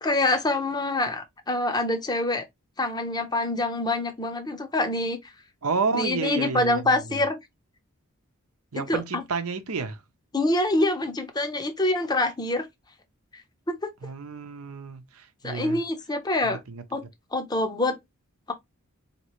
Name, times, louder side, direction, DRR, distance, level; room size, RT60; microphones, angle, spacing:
voice 1, 0.0-2.4 2.8-5.3 5.9-7.4 8.7-9.0 10.3-12.7 13.7-13.9 15.4-16.6 16.9-17.0 17.3-18.0, left 2 dB, 20° left, 0.6 m, -25 dB
voice 2, 5.6-7.2 8.7-10.0 14.0-15.8 16.4-17.1, right 4 dB, 85° right, 0.7 m, -31 dB
4.2 x 2.9 x 3.0 m
head